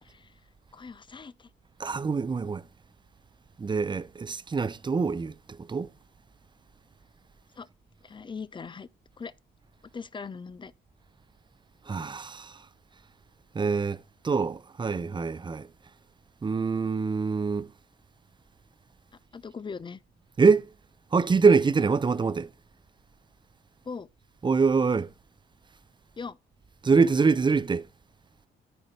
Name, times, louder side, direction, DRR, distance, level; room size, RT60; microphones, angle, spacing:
voice 1, 0.0-0.3 0.7-1.5 7.6-7.7 8.0-8.9 9.2-9.3 9.9-10.7 19.3-20.0 23.9-24.1 26.2-26.4, left 5 dB, 25° left, 0.5 m, -40 dB
voice 2, 1.8-2.6 3.6-5.9 11.9-12.6 13.5-15.7 16.4-17.7 20.4-20.7 21.1-22.5 24.4-25.1 26.8-27.9, right 5 dB, 25° right, 0.6 m, -24 dB
9.9 x 8.9 x 3.2 m
cardioid pair, 90°, 20 cm